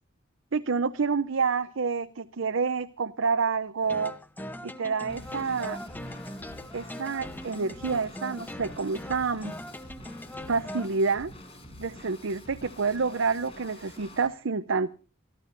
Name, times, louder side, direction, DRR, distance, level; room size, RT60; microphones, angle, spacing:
voice 1, 0.5-4.1 4.6-5.8 6.7-9.5 10.5-11.3 11.8-14.9, right 4 dB, 80° right, 11 dB, 0.7 m, -28 dB
sound 1, 3.8-10.9, left 1 dB, 10° left, 0.8 m, -40 dB
Drum kit / Drum, 5.1-14.3, left 1 dB, 30° left, 5.4 m, -47 dB
28.5 x 13.5 x 2.6 m, 0.34 s
head